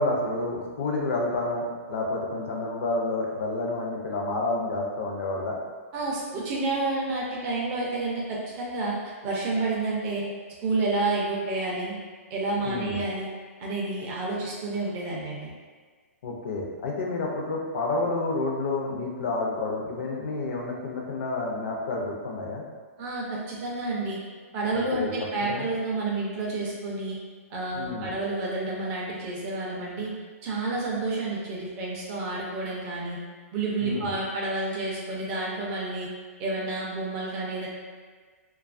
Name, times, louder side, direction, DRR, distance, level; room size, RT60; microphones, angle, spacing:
voice 1, 0.0-5.6 12.6-13.0 16.2-22.6 24.7-25.1 25.5-25.7 27.7-28.2 33.8-34.1, left 2 dB, 50° left, -1 dB, 0.5 m, -29 dB
voice 2, 5.9-9.0 9.2-10.2 10.6-12.0 12.3-13.3 13.6-15.5 23.0-24.2 24.5-27.2 27.5-30.1 30.4-33.2 33.5-36.1 36.4-37.7, right 2 dB, 20° right, -4 dB, 0.3 m, -29 dB
2.6 x 2.2 x 2.4 m, 1.5 s
hypercardioid pair, 165°, 8 cm